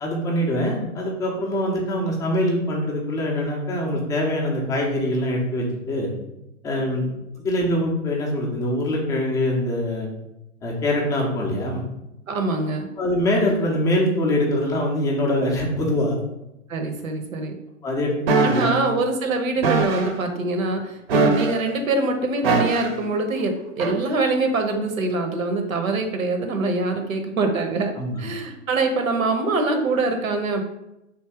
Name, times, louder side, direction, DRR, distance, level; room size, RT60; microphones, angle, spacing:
voice 1, 0.0-6.1 6.6-7.1 7.4-10.1 10.6-11.8 13.0-16.2 17.8-18.7 28.0-28.2, left 1 dB, 10° left, -2 dB, 0.4 m, -23 dB
voice 2, 12.3-12.9 16.7-17.5 18.4-27.9 28.2-30.6, right 3 dB, 80° right, 5 dB, 0.9 m, -24 dB
sound 1, 18.3-18.7 19.6-20.1 21.1-21.7 22.4-23.0 23.8-24.0, right 3 dB, 50° right, 0.7 m, -21 dB
3.4 x 2.7 x 4.6 m, 0.89 s
hypercardioid pair, 125°, 40 cm